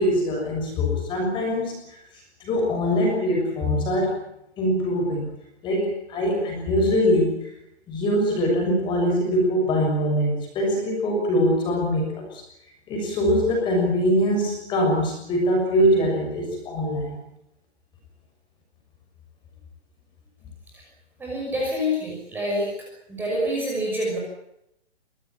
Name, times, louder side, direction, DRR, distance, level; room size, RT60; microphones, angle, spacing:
voice 1, 0.0-4.2 4.6-5.3 5.6-7.5 7.9-12.4 12.9-17.2, equal, 15° left, 1 dB, 6.7 m, -23 dB
voice 2, 21.2-22.7 23.1-24.2, equal, 5° right, -3 dB, 5.9 m, -26 dB
24.0 x 18.0 x 8.8 m, 0.81 s
hypercardioid pair, 165°, 34 cm